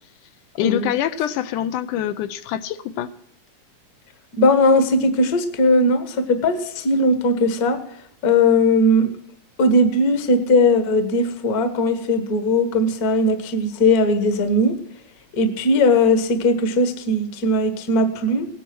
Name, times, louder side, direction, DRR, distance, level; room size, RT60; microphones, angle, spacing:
voice 1, 0.6-3.1, left 10 dB, 80° left, 11 dB, 2.1 m, -24 dB
voice 2, 4.4-7.8 8.2-9.1 9.6-14.7 15.3-18.5, left 1 dB, 45° left, 9 dB, 1.3 m, -18 dB
16.5 x 10.0 x 6.1 m, 0.72 s
omnidirectional pair, 3.7 m